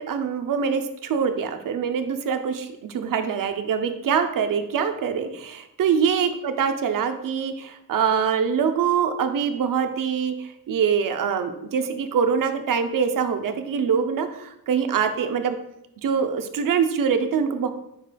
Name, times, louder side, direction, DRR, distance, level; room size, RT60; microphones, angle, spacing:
voice 1, 0.0-15.6 16.0-17.7, right 6 dB, 60° right, 7 dB, 0.5 m, -24 dB
4.8 x 4.7 x 2.2 m, 0.82 s
cardioid pair, 90°, 38 cm